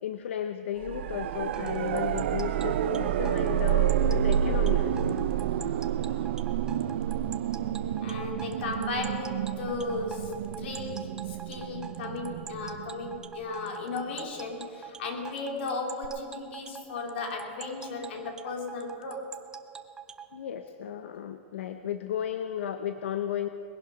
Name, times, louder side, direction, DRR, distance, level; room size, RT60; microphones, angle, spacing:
voice 1, 0.0-5.2 20.3-23.5, left 9 dB, 85° left, 9 dB, 0.7 m, -34 dB
sound 1, 0.8-13.7 16.0-16.1, right 10 dB, 70° right, 0.6 m, -29 dB
sound 2, 1.5-20.3, right 7 dB, 10° right, 0.6 m, -43 dB
voice 2, 8.0-19.3, left 3 dB, 65° left, 2 dB, 2.8 m, -35 dB
20.5 x 11.0 x 5.3 m, 2.4 s
supercardioid pair, 160°, 6 cm